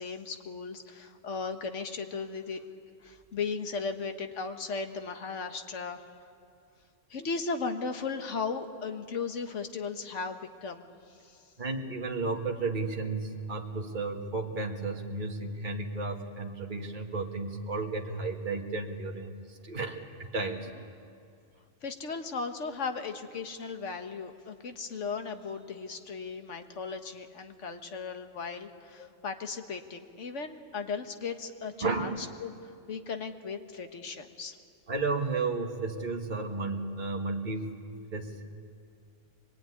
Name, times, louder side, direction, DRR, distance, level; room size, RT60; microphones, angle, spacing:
voice 1, 0.0-2.6 3.0-6.0 7.1-11.4 21.8-32.5 32.9-34.6, left 4 dB, 70° left, 6 dB, 1.7 m, -36 dB
voice 2, 11.6-20.7 29.0-29.1 31.8-32.2 34.9-37.8 38.1-38.4, right 3 dB, 40° right, 2 dB, 1.8 m, -33 dB
23.5 x 21.0 x 9.8 m, 2.4 s
omnidirectional pair, 1.3 m